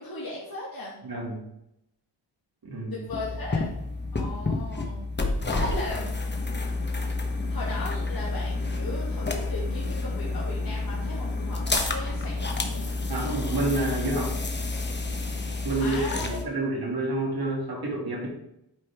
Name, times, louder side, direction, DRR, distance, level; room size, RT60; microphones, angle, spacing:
voice 1, 0.0-1.0 2.9-3.7 4.1-5.0 5.4-6.1 7.2-13.0 15.8-16.4, left 2 dB, 55° left, -6 dB, 2.2 m, -37 dB
voice 2, 1.0-1.4 2.6-2.9 13.1-14.4 15.6-18.3, right 2 dB, 55° right, -2 dB, 2.6 m, -29 dB
sound 1, 3.1-16.4, left 3 dB, 25° left, 1.0 m, -29 dB
8.8 x 5.2 x 3.5 m, 0.80 s
wide cardioid pair, 95°, 43 cm